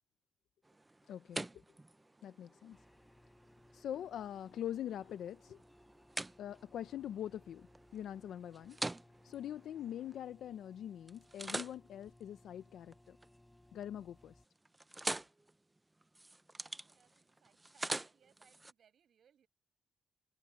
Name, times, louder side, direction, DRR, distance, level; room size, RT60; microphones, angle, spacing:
sound 1, 0.6-10.6 11.1-13.4 13.7-14.1 14.4-18.7, right 2 dB, 10° right, 0.4 m, -46 dB
voice 1, 1.1-1.5 2.2-2.8 3.7-5.6 6.4-8.8 9.2-13.2 13.7-14.4, left 10 dB, 75° left, 0.6 m, -43 dB
sound 2, 2.7-14.4, left 1 dB, 10° left, 3.5 m, -65 dB
voice 2, 16.6-19.5, right 8 dB, 55° right, 5.7 m, -71 dB
wide cardioid pair, 165°, 0 cm